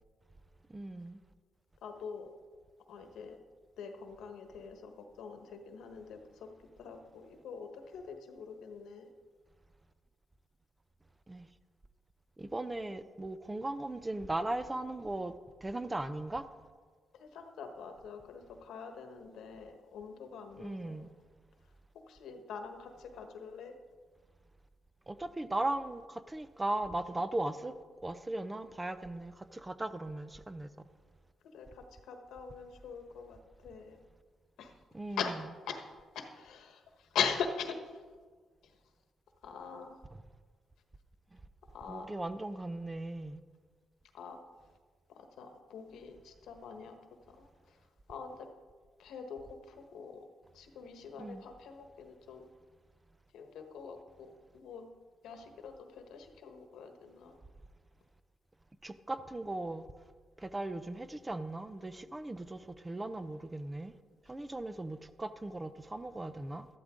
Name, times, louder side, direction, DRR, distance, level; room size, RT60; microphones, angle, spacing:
voice 1, 0.7-1.2 11.3-11.5 12.4-15.3 15.6-16.5 20.6-21.1 25.1-30.9 34.9-35.2 41.3-41.4 41.9-43.4 51.2-51.4 58.8-59.9 60.4-63.9 64.2-66.7, right 2 dB, 15° right, 12 dB, 0.6 m, -38 dB
voice 2, 1.8-2.3 2.9-3.4 3.8-9.1 17.1-21.1 22.1-23.8 31.5-34.0 34.6-34.8 35.2-38.0 38.6-38.7 39.4-40.0 41.7-42.1 44.1-44.4 45.1-47.0 47.3-47.8 48.1-48.5 49.0-50.3 50.5-52.5 53.3-54.9 55.2-57.4, left 6 dB, 85° left, 6 dB, 1.3 m, -43 dB
13.5 x 12.0 x 3.8 m, 1.5 s
cardioid pair, 105°, 0 cm